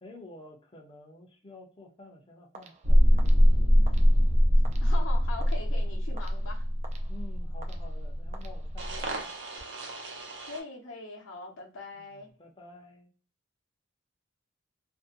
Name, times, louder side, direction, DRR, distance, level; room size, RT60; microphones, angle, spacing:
voice 1, 0.0-3.3 7.1-9.3 11.9-13.1, left 2 dB, 25° left, 0.6 m, -50 dB
sound 1, 2.5-9.8, right 3 dB, 35° right, 0.3 m, -53 dB
sound 2, 2.8-10.6, equal, 65° right, 0.7 m, -24 dB
voice 2, 4.8-6.7 10.4-12.3, left 3 dB, 75° left, 0.7 m, -41 dB
2.6 x 2.1 x 2.4 m
head